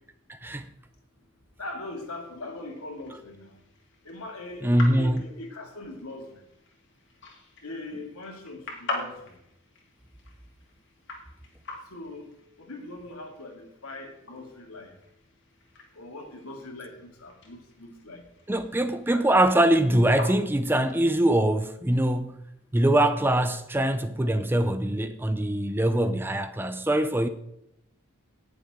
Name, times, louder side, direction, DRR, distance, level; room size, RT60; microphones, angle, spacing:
voice 1, 0.3-0.7 4.6-5.2 18.5-22.4 22.7-27.3, right 1 dB, 10° right, 0.4 m, -23 dB
voice 2, 1.6-3.6 4.0-6.4 7.6-9.4 11.9-12.3 12.6-14.9 15.9-18.2 19.1-19.2, left 2 dB, 75° left, 2.4 m, -41 dB
sound 1, 1.8-21.4, left 2 dB, 55° left, 2.4 m, -44 dB
18.0 x 7.0 x 3.7 m
head